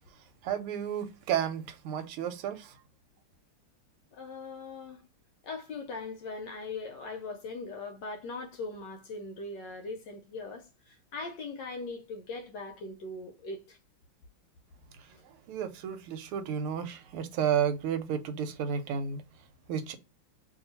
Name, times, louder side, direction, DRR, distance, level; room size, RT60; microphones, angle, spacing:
voice 1, 0.4-2.7 15.5-19.2 19.7-20.0, right 8 dB, 90° right, 1.6 m, -32 dB
voice 2, 4.1-5.0 5.4-13.8, left 3 dB, 70° left, 1.1 m, -40 dB
2.9 x 2.8 x 3.9 m
omnidirectional pair, 2.4 m